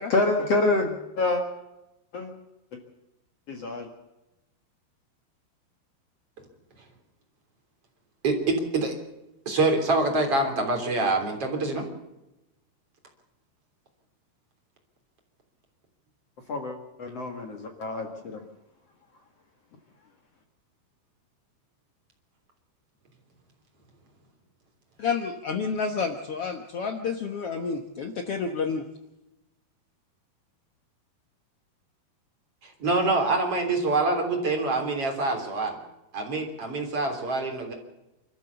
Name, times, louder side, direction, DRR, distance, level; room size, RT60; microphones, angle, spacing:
voice 1, 0.1-1.4 2.1-2.3 3.5-3.9 16.5-18.4, left 2 dB, 50° left, 3 dB, 2.4 m, -27 dB
voice 2, 8.2-8.9 9.5-11.9 32.6-35.8 36.1-37.7, right 2 dB, 40° right, 3 dB, 4.1 m, -25 dB
voice 3, 25.0-28.8, left 5 dB, 75° left, 5 dB, 1.3 m, -30 dB
28.0 x 14.0 x 7.0 m, 0.95 s
omnidirectional pair, 4.6 m